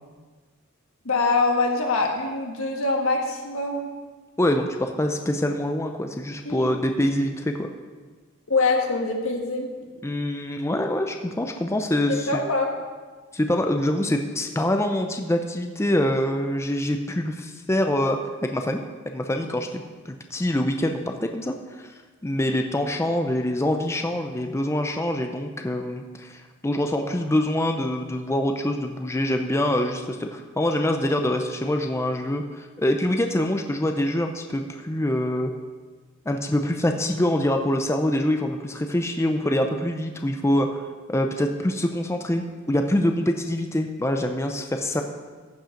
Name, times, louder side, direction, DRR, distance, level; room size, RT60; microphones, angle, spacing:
voice 1, 1.0-3.9 6.4-6.7 8.5-9.7 12.1-12.7, left 3 dB, 80° left, 1 dB, 1.5 m, -24 dB
voice 2, 4.4-7.7 10.0-12.4 13.3-21.9 22.2-35.5 36.3-40.8 41.1-45.0, left 1 dB, 15° left, 5 dB, 0.5 m, -25 dB
14.5 x 5.6 x 5.1 m, 1.4 s
head